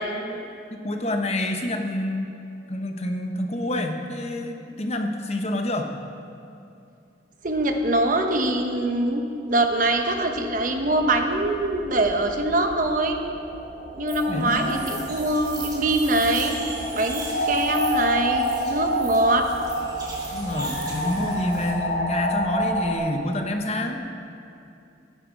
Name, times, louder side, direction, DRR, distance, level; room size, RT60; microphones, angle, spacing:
voice 1, 0.1-2.3 2.7-5.9 14.3-15.1 20.3-24.1, left 1 dB, 35° left, 4 dB, 1.0 m, -28 dB
voice 2, 7.4-13.2 13.9-16.6 16.9-19.5, right 1 dB, 45° right, 4 dB, 1.0 m, -23 dB
sound 1, 10.0-23.0, equal, 65° left, 2.9 m, -30 dB
sound 2, 14.1-21.7, right 3 dB, 20° right, 2.1 m, -39 dB
14.0 x 10.0 x 5.3 m, 2.5 s
head